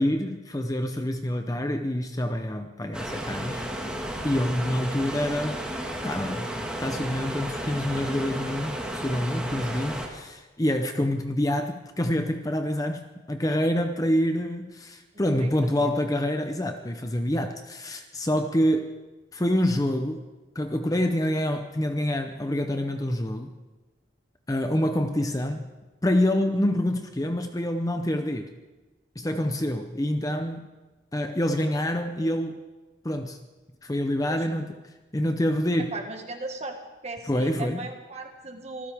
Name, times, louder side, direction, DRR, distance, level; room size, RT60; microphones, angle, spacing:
voice 1, 0.0-3.6 4.2-5.6 6.0-6.5 6.8-19.0 19.3-20.2 20.5-23.5 24.5-25.6 26.0-28.5 29.2-30.7 31.1-32.6 33.0-33.4 33.8-34.7 35.1-36.0 37.2-37.8, left 1 dB, 20° left, 6 dB, 0.7 m, -26 dB
sound 1, 2.9-10.1, right 1 dB, 5° right, 1.8 m, -33 dB
voice 2, 15.1-15.7 34.3-34.5 35.9-36.8 37.0-38.9, right 2 dB, 35° right, 3 dB, 1.7 m, -37 dB
25.0 x 15.0 x 3.5 m, 1.2 s
head